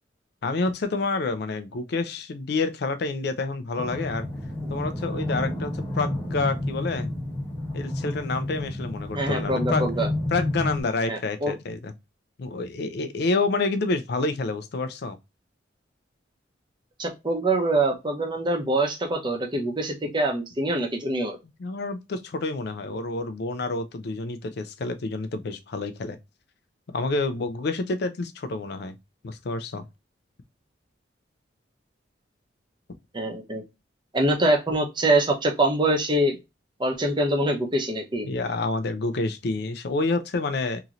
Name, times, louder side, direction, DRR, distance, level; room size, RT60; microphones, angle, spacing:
voice 1, 0.4-4.3 4.7-7.1 7.7-9.9 10.3-11.9 12.4-15.2 21.6-26.2 26.9-29.0 29.2-29.8 38.2-40.8, left 3 dB, 60° left, 0.4 m, -28 dB
sound 1, 3.8-10.8, left 1 dB, 10° left, 0.9 m, -30 dB
voice 2, 9.1-10.1 11.1-11.5 17.0-21.4 33.1-33.6 34.1-36.4 36.8-38.3, right 1 dB, 25° right, 0.7 m, -24 dB
3.0 x 2.7 x 2.4 m
head